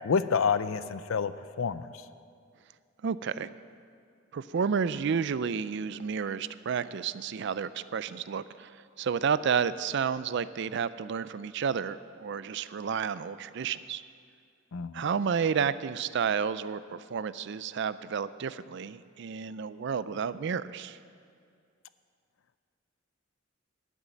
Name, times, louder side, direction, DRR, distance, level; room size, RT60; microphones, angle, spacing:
voice 1, 0.0-1.3 1.6-1.9 14.7-15.0, left 6 dB, 80° left, 14 dB, 0.5 m, -28 dB
voice 2, 3.0-3.5 4.3-14.0 14.9-21.0, right 6 dB, 60° right, 16 dB, 0.4 m, -31 dB
12.0 x 7.4 x 9.1 m, 2.3 s
head